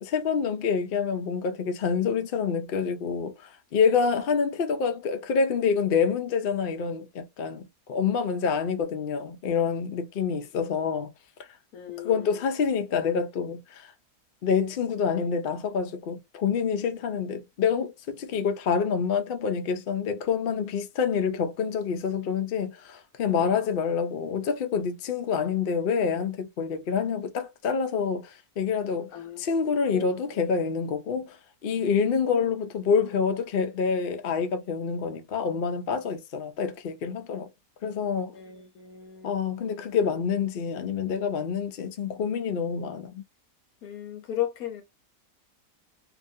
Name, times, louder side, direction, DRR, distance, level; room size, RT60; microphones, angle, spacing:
voice 1, 0.0-11.1 12.0-13.9 14.4-31.4 31.6-37.5 37.8-38.3 39.2-43.2, left 6 dB, 80° left, 0.5 m, -27 dB
voice 2, 11.7-12.4 23.4-23.6 29.1-29.6 29.9-30.3 38.3-39.4 43.8-44.8, left 11 dB, 65° left, 1.2 m, -36 dB
2.8 x 2.5 x 2.6 m
omnidirectional pair, 1.7 m